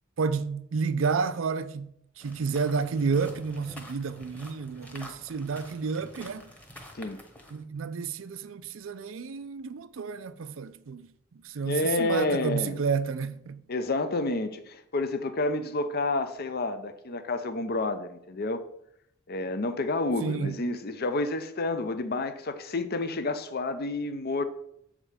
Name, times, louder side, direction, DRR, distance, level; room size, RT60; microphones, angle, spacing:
voice 1, 0.2-6.4 7.5-11.1 11.3-13.6 20.2-20.6, right 5 dB, 75° right, 0.5 m, -30 dB
sound 1, 2.2-7.6, left 1 dB, 5° left, 1.1 m, -48 dB
voice 2, 11.6-12.8 13.7-18.6 19.3-24.4, left 2 dB, 50° left, 0.6 m, -29 dB
7.4 x 5.0 x 5.0 m
head